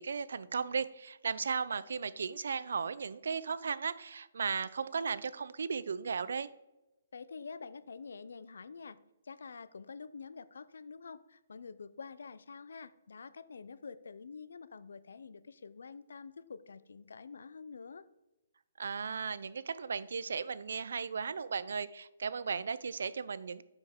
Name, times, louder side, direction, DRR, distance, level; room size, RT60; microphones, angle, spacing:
voice 1, 0.0-6.5 18.8-23.6, right 5 dB, 80° right, 17 dB, 0.4 m, -36 dB
voice 2, 7.1-9.0 9.2-18.1, left 5 dB, 90° left, 16 dB, 0.5 m, -47 dB
8.9 x 5.3 x 3.6 m, 0.96 s
hypercardioid pair, 170°, 0 cm